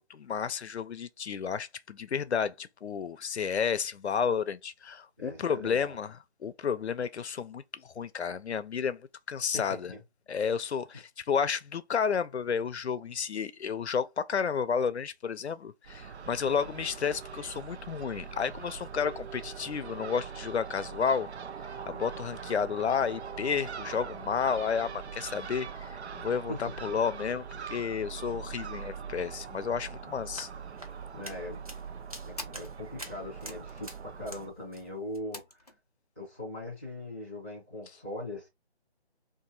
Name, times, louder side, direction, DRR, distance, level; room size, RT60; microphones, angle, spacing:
voice 1, 0.0-6.1 6.4-9.0 9.3-9.9 10.3-21.3 21.9-25.9 26.1-30.5, left 6 dB, 85° left, 0.6 m, -31 dB
voice 2, 5.2-6.0 9.5-10.0 26.5-26.6 31.1-31.6 32.2-35.6 36.2-38.5, left 1 dB, 15° right, 0.9 m, -40 dB
Crow / Gull seagull, 15.8-34.5, right 6 dB, 90° right, 0.5 m, -42 dB
sound 1, 29.6-29.8 30.1-30.2 30.5-31.1 31.7-35.8, left 2 dB, 40° left, 0.5 m, -48 dB
sound 2, 30.1-34.5 34.7-35.2, equal, 35° right, 0.5 m, -47 dB
2.9 x 2.6 x 3.8 m
figure-of-eight pair, 170°, 32 cm